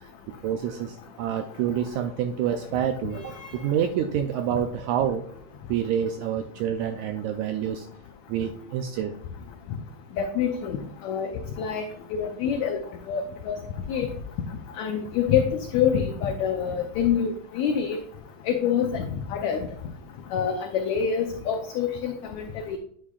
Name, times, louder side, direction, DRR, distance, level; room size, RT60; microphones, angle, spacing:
voice 1, 0.0-5.3 5.7-7.9 8.3-9.2, right 9 dB, 85° right, 6 dB, 1.7 m, -28 dB
voice 2, 10.2-10.8 11.0-11.3 11.6-11.8 12.1-12.8 13.1-13.6 13.9-14.1 14.8-15.5 15.7-18.0 18.5-19.6 20.3-22.8, left 7 dB, 80° left, 4 dB, 1.7 m, -26 dB
9.8 x 6.1 x 2.4 m, 0.64 s
omnidirectional pair, 3.9 m